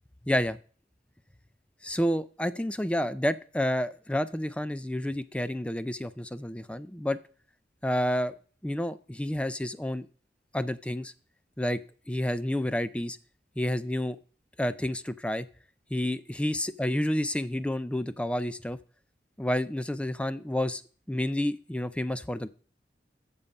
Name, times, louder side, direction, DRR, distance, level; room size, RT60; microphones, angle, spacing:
voice 1, 0.3-0.6 1.8-7.2 7.8-8.3 8.6-10.1 10.5-11.1 11.6-11.8 12.1-13.2 13.6-14.2 14.6-15.5 15.9-18.8 19.4-20.8 21.1-22.5, left 1 dB, 5° left, 14 dB, 0.4 m, -29 dB
12.5 x 7.1 x 5.3 m, 0.44 s
head